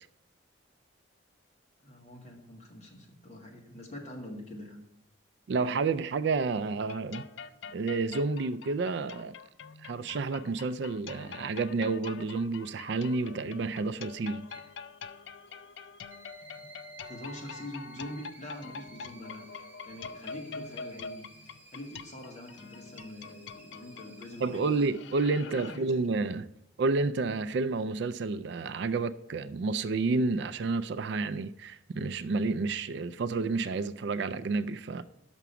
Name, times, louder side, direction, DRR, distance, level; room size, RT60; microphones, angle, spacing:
voice 1, 1.8-4.8 16.5-16.6 17.0-21.3 21.7-24.8 25.4-26.2, left 1 dB, 35° left, 1.6 m, -44 dB
voice 2, 5.5-7.2 7.7-9.3 9.8-14.5 24.4-26.5 26.8-35.0, right 3 dB, 60° right, 0.3 m, -30 dB
sound 1, 6.8-25.8, left 5 dB, 65° left, 0.4 m, -45 dB
sound 2, 9.3-24.9, right 2 dB, 10° right, 0.8 m, -56 dB
6.0 x 5.9 x 6.8 m
head